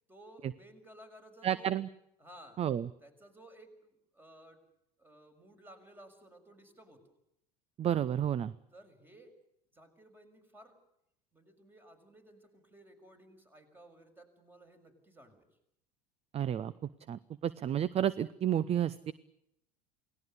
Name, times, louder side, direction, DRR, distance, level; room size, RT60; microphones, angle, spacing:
voice 1, 0.0-1.7 2.2-2.6 3.0-4.6 5.0-7.0 8.7-9.3 9.7-10.8 11.3-15.5, right 1 dB, 10° right, 6 dB, 6.3 m, -56 dB
voice 2, 1.4-1.9 2.6-2.9 7.8-8.5 16.3-16.7 17.1-19.1, right 10 dB, 30° right, 19 dB, 0.8 m, -31 dB
29.0 x 19.0 x 6.9 m, 0.79 s
figure-of-eight pair, 75°, 20 cm